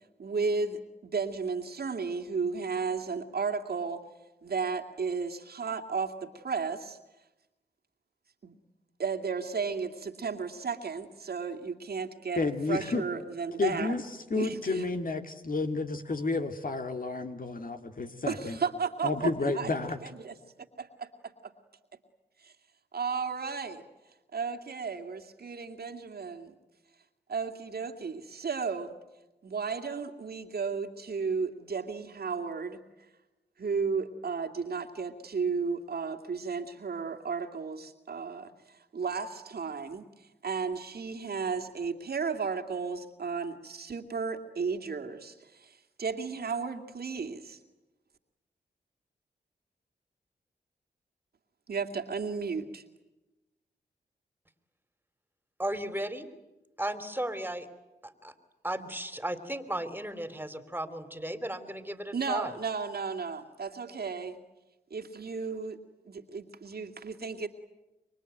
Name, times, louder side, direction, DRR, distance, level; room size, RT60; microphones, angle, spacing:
voice 1, 0.2-4.0 4.4-7.0 8.4-8.5 9.0-12.4 12.7-13.9 14.3-14.9 18.3-19.7 20.0-20.3 20.8-21.5 22.4-22.5 22.9-23.8 24.3-26.5 27.3-28.9 29.4-32.8 33.6-38.5 38.9-40.1 40.4-47.6 51.7-52.8 62.1-64.4 64.9-65.8 66.1-67.5, right 5 dB, 65° right, 5 dB, 2.4 m, -34 dB
voice 2, 12.4-13.0 13.6-14.0 14.3-18.6 19.0-20.0, left 3 dB, 55° left, 6 dB, 2.4 m, -31 dB
voice 3, 55.6-56.3 56.8-57.7 58.0-58.3 58.6-62.6, right 1 dB, 10° right, 10 dB, 3.2 m, -35 dB
26.5 x 23.5 x 9.2 m, 1.0 s
supercardioid pair, 40°, 18 cm